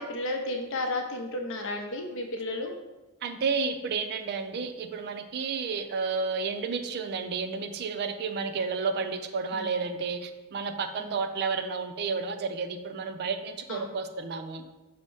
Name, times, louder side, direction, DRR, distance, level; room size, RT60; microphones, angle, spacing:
voice 1, 0.0-2.7 9.5-9.7 11.0-11.2 13.7-13.9, left 2 dB, 60° left, 3 dB, 0.6 m, -33 dB
voice 2, 3.2-14.6, right 5 dB, 50° right, 8 dB, 0.4 m, -31 dB
5.4 x 2.1 x 4.6 m, 1.1 s
head